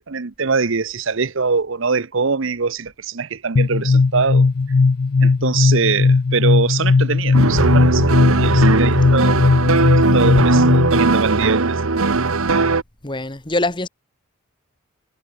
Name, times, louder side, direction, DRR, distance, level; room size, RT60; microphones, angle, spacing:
voice 1, 0.0-4.5 5.2-9.5 10.1-12.3, right 4 dB, 60° right, 0.8 m, -23 dB
sound 1, 3.6-11.1, left 4 dB, 45° left, 0.4 m, -17 dB
sound 2, 7.3-12.8, right 3 dB, 75° right, 1.2 m, -18 dB
voice 2, 13.0-13.9, left 2 dB, 20° left, 1.5 m, -23 dB
head